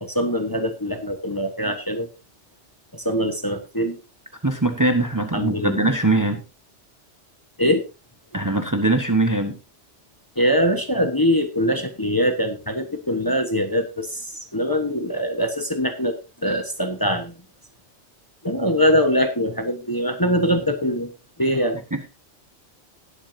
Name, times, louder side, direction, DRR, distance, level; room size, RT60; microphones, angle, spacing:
voice 1, 0.0-2.1 2.9-4.0 5.3-5.8 7.6-7.8 10.3-17.3 18.4-21.1 21.4-21.8, equal, 20° left, 5 dB, 1.3 m, -23 dB
voice 2, 4.4-6.4 8.3-9.5 21.9-22.1, right 2 dB, 15° right, 6 dB, 1.2 m, -21 dB
18.0 x 8.5 x 2.8 m, 0.28 s
omnidirectional pair, 1.2 m